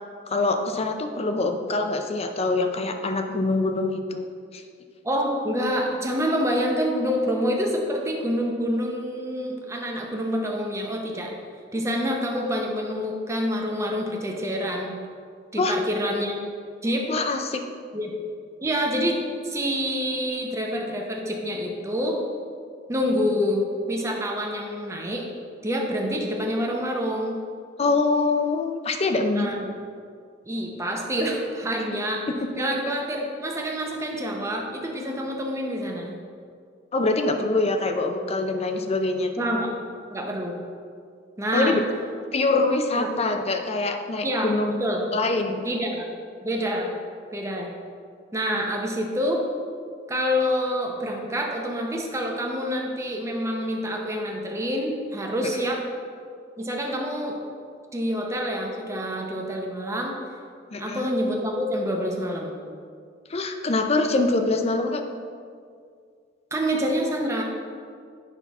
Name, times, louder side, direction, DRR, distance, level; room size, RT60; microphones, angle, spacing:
voice 1, 0.3-4.3 4.5-4.6 15.6-15.8 17.1-17.6 27.8-29.5 32.6-32.8 36.9-39.5 41.5-41.8 42.3-44.8 45.1-45.6 55.4-55.5 60.7-61.1 63.3-65.0, left 3 dB, 35° left, 6 dB, 0.5 m, -24 dB
voice 2, 5.0-11.3 11.7-15.0 15.5-16.4 16.8-17.1 17.9-18.2 18.6-22.2 22.9-25.3 25.6-27.3 29.3-29.7 30.4-32.3 32.6-36.2 39.4-39.7 40.1-40.6 41.4-41.8 43.0-43.1 44.2-45.0 45.6-46.1 46.4-47.0 47.3-47.7 48.3-49.4 50.1-55.8 56.6-57.4 57.9-60.2 60.8-62.6 66.5-67.4, equal, 15° right, 0 dB, 0.8 m, -27 dB
8.2 x 5.7 x 3.6 m, 2.2 s
head